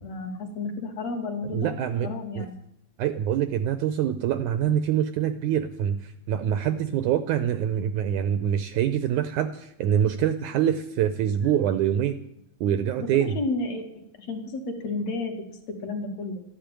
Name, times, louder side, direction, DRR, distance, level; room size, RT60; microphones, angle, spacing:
voice 1, 0.0-1.7 2.0-2.6 13.0-13.8 14.2-16.4, left 3 dB, 50° left, 3 dB, 2.9 m, -32 dB
voice 2, 1.5-2.1 2.4-2.5 3.0-12.2 12.6-13.4, right 10 dB, 75° right, 10 dB, 1.9 m, -25 dB
13.5 x 10.5 x 9.0 m, 0.75 s
omnidirectional pair, 4.1 m